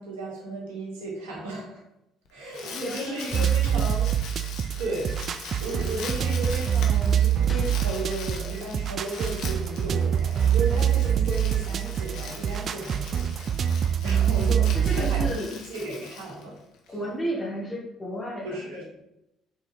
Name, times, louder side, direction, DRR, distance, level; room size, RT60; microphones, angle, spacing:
voice 1, 0.0-1.8 2.3-4.1 4.8-5.1 5.6-16.5 18.4-19.0, right 2 dB, 85° right, -3 dB, 2.2 m, -34 dB
Crumpling crinkling, 2.3-16.9, left 5 dB, 70° left, 1.1 m, -41 dB
voice 2, 2.6-3.2 3.4-3.8 14.7-15.6 16.9-18.6, equal, 20° left, -6 dB, 1.8 m, -33 dB
sound 1, 3.3-15.3, right 9 dB, 50° right, 0.3 m, -25 dB
sound 2, 7.5-10.3, left 2 dB, 45° left, 1.6 m, -47 dB
7.0 x 4.0 x 3.4 m, 0.85 s
hypercardioid pair, 60°, 0 cm